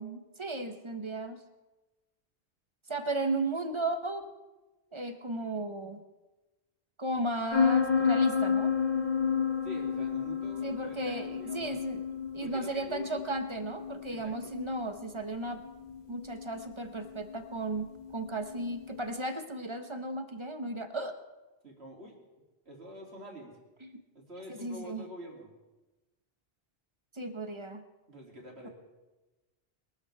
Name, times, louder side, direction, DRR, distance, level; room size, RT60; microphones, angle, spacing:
voice 1, 0.0-1.4 2.9-4.3 4.9-6.0 7.0-8.7 10.6-12.0 12.3-15.6 16.1-21.2 23.8-24.0 24.5-25.1 27.1-27.8 28.6-28.7, right 2 dB, 30° right, 8 dB, 0.9 m, -35 dB
sound 1, 7.5-19.0, left 6 dB, 40° left, 1.5 m, -31 dB
voice 2, 9.6-11.8 12.4-13.1 14.1-14.5 21.6-22.1 22.6-23.5 24.1-25.5 28.1-28.7, equal, 75° right, -1 dB, 3.0 m, -46 dB
21.5 x 12.5 x 3.4 m, 1.1 s
omnidirectional pair, 1.1 m